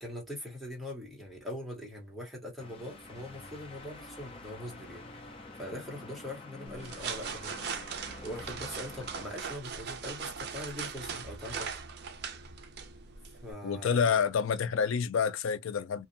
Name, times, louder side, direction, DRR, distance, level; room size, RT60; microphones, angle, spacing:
voice 1, 0.0-7.5 8.2-11.7 13.4-14.2, left 1 dB, ahead, 0.9 m, -42 dB
sound 1, 2.6-9.4, left 2 dB, 25° left, 0.6 m, -48 dB
sound 2, 6.7-13.5, right 6 dB, 50° right, 0.4 m, -40 dB
voice 2, 13.6-16.1, left 6 dB, 75° left, 0.4 m, -28 dB
2.6 x 2.1 x 2.5 m
head